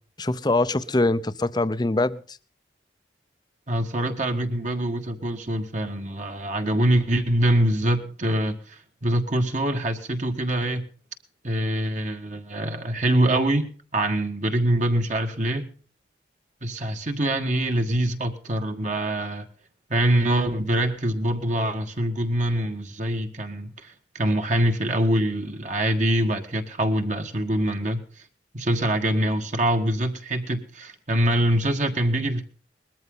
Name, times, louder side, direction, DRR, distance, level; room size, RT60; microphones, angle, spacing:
voice 1, 0.2-2.2, left 2 dB, 25° left, 0.7 m, -23 dB
voice 2, 3.7-10.8 11.4-15.7 16.6-19.5 19.9-28.0 28.5-32.4, right 1 dB, 40° right, 1.7 m, -24 dB
20.5 x 14.0 x 3.9 m
head